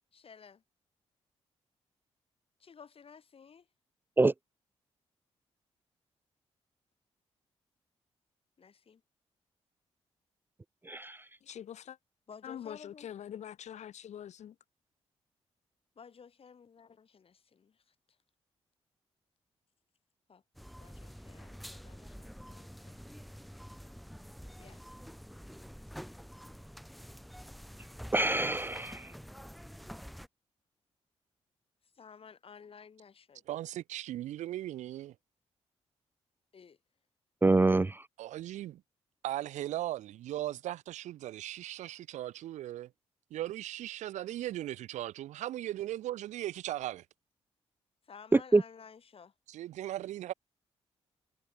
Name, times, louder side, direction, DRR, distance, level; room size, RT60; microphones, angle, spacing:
voice 1, 0.1-0.6 2.6-3.7 8.6-9.0 12.3-13.1 16.0-17.9 20.3-20.4 20.8-23.0 24.6-24.8 31.9-33.4 36.5-36.8 48.0-49.3, left 6 dB, 50° left, 2.6 m, -54 dB
voice 2, 10.9-11.2 28.1-29.1 37.4-38.0 48.3-48.6, right 2 dB, 15° right, 0.4 m, -25 dB
voice 3, 11.4-12.0 12.4-14.6, left 10 dB, 75° left, 2.6 m, -44 dB
sound 1, 20.5-30.3, equal, ahead, 0.9 m, -48 dB
voice 4, 33.5-35.2 38.2-38.8 39.2-42.9 43.3-47.1 49.5-50.3, right 13 dB, 80° right, 0.7 m, -38 dB
supercardioid pair, 60°, 12 cm